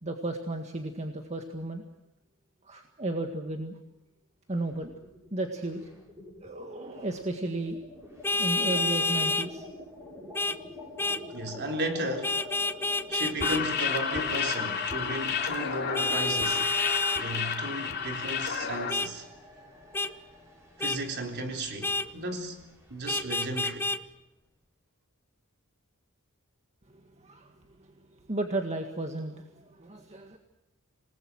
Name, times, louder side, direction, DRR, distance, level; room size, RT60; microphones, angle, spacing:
voice 1, 0.0-1.8 2.6-3.8 4.5-4.9 5.3-5.9 6.4-7.8 8.4-9.6 26.9-27.5 27.8-27.9 28.3-30.4, right 2 dB, 30° right, 1.8 m, -34 dB
sound 1, 4.5-5.3 5.6-23.6, left 3 dB, 15° right, 7.2 m, -47 dB
Vehicle horn car horn honking, 8.2-9.5 10.3-10.6 11.0-11.2 12.2-13.6 15.9-17.2 18.9-19.1 19.9-20.1 20.8-21.0 21.8-22.1 23.1-24.0, left 3 dB, 10° left, 0.8 m, -28 dB
voice 2, 11.3-12.4 13.1-16.7 17.2-19.3 20.8-22.6 22.9-23.9, right 1 dB, 50° right, 4.0 m, -34 dB
sound 2, 13.3-18.9, left 6 dB, 50° left, 2.9 m, -31 dB
27.0 x 20.0 x 6.4 m
head